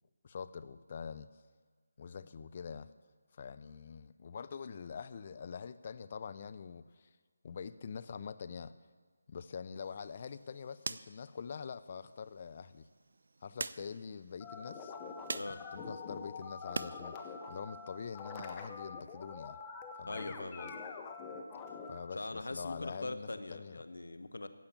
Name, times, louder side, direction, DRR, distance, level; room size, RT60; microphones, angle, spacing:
voice 1, 0.2-1.3 2.0-2.9 3.3-7.1 7.4-8.7 9.3-12.9 13.4-14.9 15.5-19.6 20.0-20.3 21.9-23.8, left 6 dB, 40° left, 12 dB, 0.5 m, -45 dB
sound 1, 9.8-17.0 17.3-18.4, right 3 dB, 60° right, 0.4 m, -46 dB
sound 2, 14.4-22.0, left 5 dB, 15° left, 0.9 m, -45 dB
voice 2, 20.1-20.8 22.1-24.5, left 2 dB, 70° left, 11 dB, 1.0 m, -41 dB
15.5 x 5.7 x 8.8 m, 1.5 s
figure-of-eight pair, 160°, 0 cm